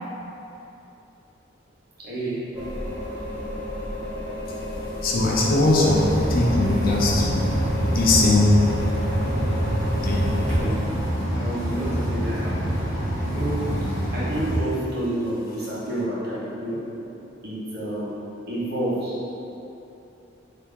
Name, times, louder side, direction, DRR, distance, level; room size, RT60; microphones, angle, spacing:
voice 1, 2.0-2.4 5.7-5.9 10.5-10.7 11.3-12.6 13.3-13.6 14.1-16.8 17.4-18.1 18.5-19.2, right 1 dB, 55° right, -8 dB, 1.0 m, -29 dB
sound 1, 2.5-10.6, left 1 dB, 5° left, 1.0 m, -32 dB
voice 2, 4.5-6.0 6.3-9.3 9.7-10.6 14.0-14.1, left 2 dB, 50° left, -3 dB, 0.5 m, -22 dB
sound 2, 5.8-14.6, equal, 80° right, 0.7 m, -25 dB
3.3 x 2.9 x 3.7 m, 2.9 s
head